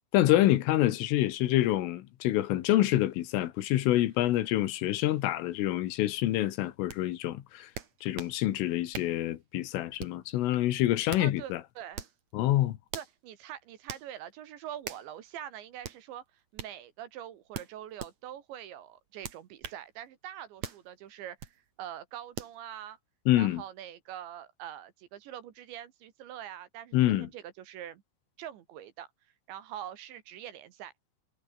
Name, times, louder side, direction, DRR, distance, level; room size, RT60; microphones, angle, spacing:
voice 1, 0.1-7.7 8.0-11.6 12.3-12.8 23.3-23.6 26.9-27.3, left 14 dB, 75° left, 4.0 m, -26 dB
sound 1, 6.9-7.0 7.8-8.4 8.9-9.2 10.0-10.3 10.9-11.3 11.9-12.2 12.9-13.1 13.9-14.1 14.8-15.1 15.8-16.0 16.6-16.7 17.5-18.1 19.2-19.8 20.6-20.8 21.4-21.6 22.4-22.6, right 7 dB, 45° right, 2.7 m, -41 dB
voice 2, 11.2-12.1 12.9-16.2 16.5-23.0 23.4-28.0 28.4-29.1 29.5-30.9, right 11 dB, 65° right, 3.8 m, -44 dB
omnidirectional pair, 5.9 m